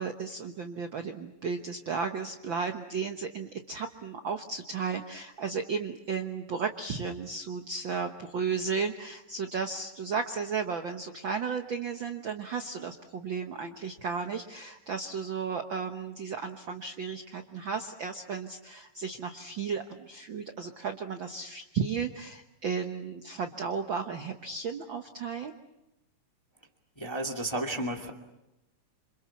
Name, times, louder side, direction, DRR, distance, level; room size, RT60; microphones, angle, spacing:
voice 1, 0.0-25.5, right 5 dB, 55° right, 6 dB, 1.4 m, -34 dB
voice 2, 27.0-28.1, right 1 dB, 10° left, 2 dB, 1.5 m, -32 dB
27.5 x 26.5 x 7.1 m, 0.91 s
omnidirectional pair, 3.6 m